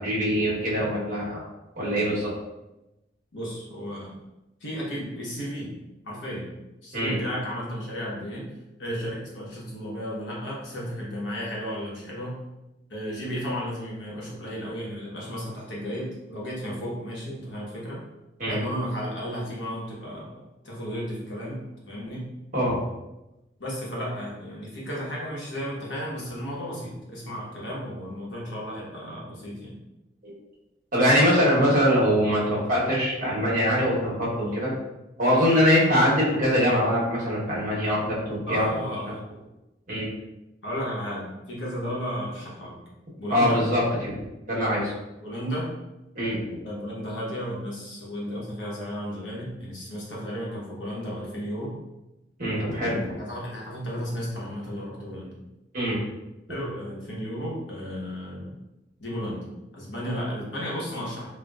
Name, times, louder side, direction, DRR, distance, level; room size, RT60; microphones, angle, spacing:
voice 1, 0.0-1.4 1.8-2.3 6.9-7.2 18.4-18.6 22.5-22.8 30.9-34.7 35.2-38.7 39.9-40.1 43.3-44.2 44.5-44.9 46.1-46.6 52.4-53.1 55.7-56.0, equal, 50° right, -5 dB, 1.1 m, -23 dB
voice 2, 3.3-4.1 4.6-5.7 6.0-6.5 6.8-8.5 8.8-12.4 12.9-18.0 18.5-22.3 23.6-29.8 34.4-34.7 38.5-39.2 40.6-42.8 43.2-43.6 45.2-45.7 46.6-51.8 52.7-55.3 56.5-58.6 59.0-59.4 59.7-61.3, equal, 80° left, -5 dB, 1.0 m, -33 dB
4.3 x 2.2 x 2.3 m, 0.97 s
head